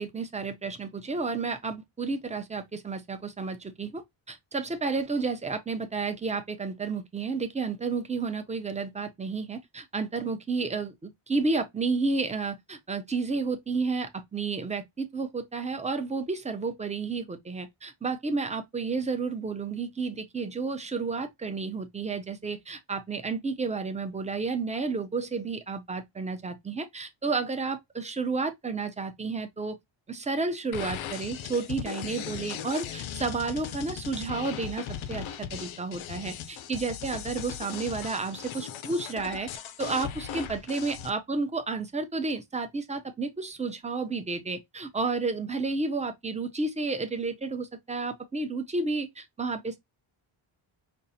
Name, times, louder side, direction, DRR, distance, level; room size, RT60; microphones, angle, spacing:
voice 1, 0.0-29.8 30.1-39.5 39.8-49.8, right 4 dB, 15° right, 0.5 m, -31 dB
sound 1, 30.7-41.1, left 9 dB, 75° left, 0.7 m, -38 dB
5.3 x 2.5 x 2.7 m
wide cardioid pair, 170°, 47 cm